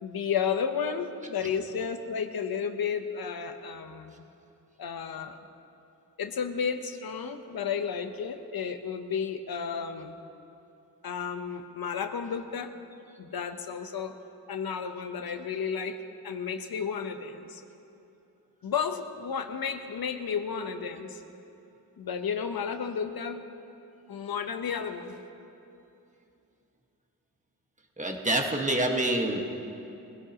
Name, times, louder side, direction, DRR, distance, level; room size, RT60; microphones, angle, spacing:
voice 1, 0.0-4.2 4.8-5.4 6.2-10.1 11.0-12.7 13.2-14.2 14.5-16.0 16.2-17.6 18.6-21.2 22.0-23.4 24.1-25.2, left 6 dB, 75° left, 7 dB, 1.0 m, -32 dB
voice 2, 28.0-29.4, right 1 dB, 20° right, 1 dB, 1.5 m, -26 dB
23.0 x 16.5 x 2.9 m, 2.8 s
wide cardioid pair, 110°, 37 cm